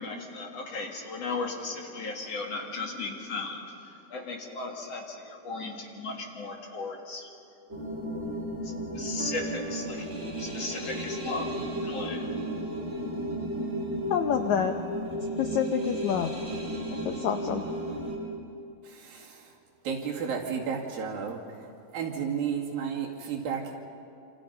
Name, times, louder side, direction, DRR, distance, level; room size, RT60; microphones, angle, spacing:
voice 1, 0.0-7.3 8.6-10.1 10.4-12.3, left 3 dB, 50° left, 1 dB, 2.7 m, -36 dB
sound 1, 7.7-18.2, equal, 20° right, 4.6 m, -34 dB
sound 2, 8.0-8.5 9.2-12.1, right 5 dB, 55° right, 3.9 m, -43 dB
voice 2, 14.1-14.7 15.4-16.3 17.0-17.6, left 8 dB, 75° left, 6 dB, 1.8 m, -27 dB
voice 3, 18.8-19.5 19.8-23.8, right 6 dB, 75° right, -1 dB, 4.1 m, -33 dB
28.0 x 27.5 x 5.6 m, 2.6 s
omnidirectional pair, 4.2 m